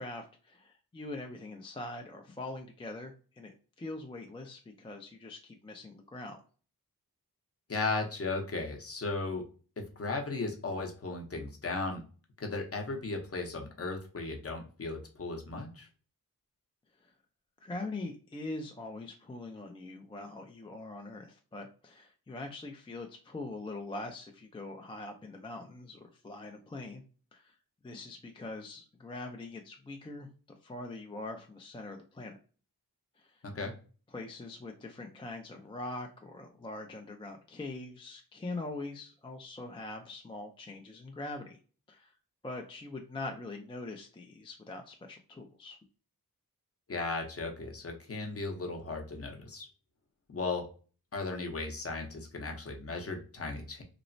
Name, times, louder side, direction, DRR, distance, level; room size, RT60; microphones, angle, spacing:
voice 1, 0.0-6.4 17.0-17.1 17.6-27.0 27.3-27.5 27.8-30.3 30.6-32.3 33.2-33.3 34.1-41.6 41.9-42.1 42.4-45.8, left 2 dB, 15° left, 3 dB, 0.3 m, -43 dB
voice 2, 7.7-9.4 9.8-12.0 12.4-15.9 33.4-33.7 46.9-49.7 50.3-50.7 51.1-53.8, left 3 dB, 40° left, 2 dB, 0.7 m, -36 dB
3.0 x 2.0 x 2.5 m, 0.38 s
wide cardioid pair, 100°, 37 cm